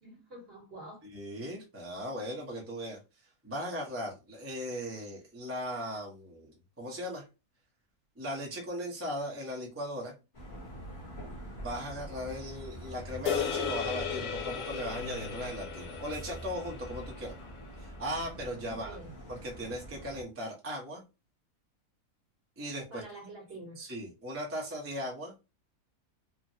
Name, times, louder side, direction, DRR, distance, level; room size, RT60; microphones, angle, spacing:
voice 1, 0.0-1.0 18.6-19.1 22.9-23.8, right 1 dB, 45° right, 1.1 m, -47 dB
voice 2, 1.1-3.0 3.4-7.2 8.2-10.1 11.5-17.4 17.8-19.0 19.3-21.0 22.6-23.0 23.8-25.3, equal, 15° right, 0.6 m, -38 dB
sound 1, 10.3-20.2, right 1 dB, 35° left, 1.0 m, -45 dB
sound 2, 13.3-17.7, left 7 dB, 80° left, 1.1 m, -36 dB
3.3 x 2.1 x 2.6 m
omnidirectional pair, 1.6 m